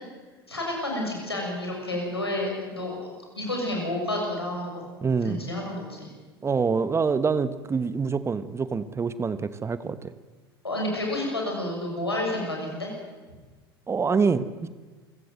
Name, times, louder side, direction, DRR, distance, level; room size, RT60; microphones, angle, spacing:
voice 1, 0.5-4.8 5.2-6.1 10.6-12.9, left 1 dB, 90° left, 0 dB, 6.7 m, -30 dB
voice 2, 5.0-5.5 6.4-10.1 13.9-14.7, right 5 dB, 20° right, 14 dB, 1.1 m, -26 dB
27.5 x 16.0 x 7.7 m, 1.3 s
figure-of-eight pair, 75°, 13 cm